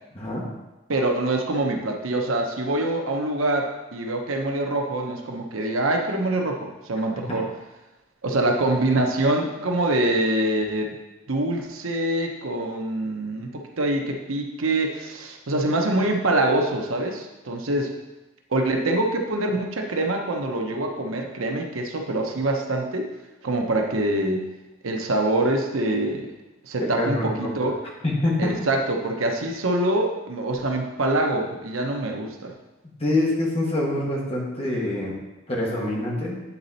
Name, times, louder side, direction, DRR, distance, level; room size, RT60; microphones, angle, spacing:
voice 1, 0.1-0.4 7.2-7.4 26.8-27.5 28.0-28.5 33.0-35.2 35.5-36.4, left 1 dB, 30° left, -3 dB, 1.4 m, -25 dB
voice 2, 0.9-7.5 8.2-11.0 11.3-17.9 18.5-23.1 23.4-24.5 24.8-26.3 26.6-27.7 28.4-32.5, right 1 dB, 90° right, 2 dB, 0.9 m, -25 dB
8.3 x 4.1 x 4.1 m, 1.1 s
head